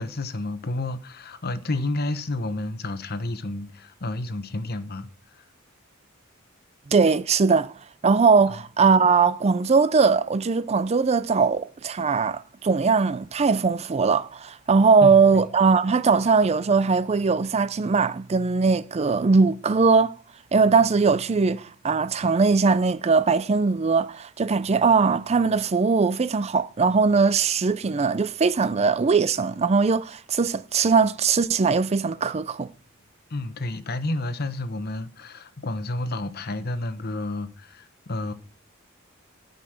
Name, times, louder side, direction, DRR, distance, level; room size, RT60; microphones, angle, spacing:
voice 1, 0.0-5.4 8.5-8.6 15.0-15.4 33.3-38.3, left 2 dB, 50° left, 1.0 m, -30 dB
voice 2, 6.9-7.7 8.0-20.1 20.5-32.7, right 4 dB, 30° right, 0.4 m, -20 dB
13.0 x 5.4 x 6.4 m
head